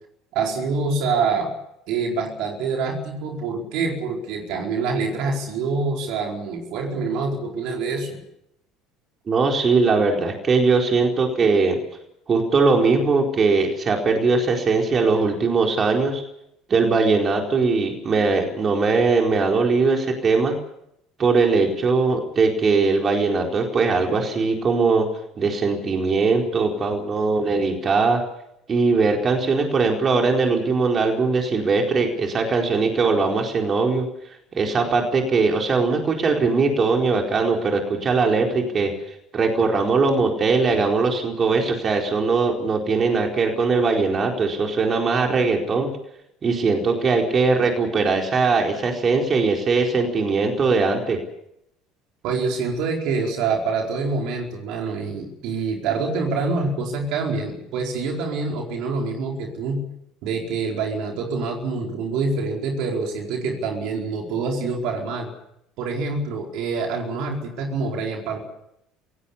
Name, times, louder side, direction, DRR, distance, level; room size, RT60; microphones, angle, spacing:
voice 1, 0.3-1.5 1.9-8.2 52.2-59.8 60.2-65.3 65.8-68.4, right 4 dB, 65° right, 1 dB, 4.6 m, -26 dB
voice 2, 9.3-11.8 12.3-16.2 16.7-20.6 21.2-25.1 25.4-28.2 28.7-34.1 34.5-38.9 39.3-45.9 46.4-51.2, right 4 dB, 35° right, 2 dB, 4.4 m, -20 dB
27.0 x 17.5 x 7.1 m, 0.79 s
hypercardioid pair, 70°, 0 cm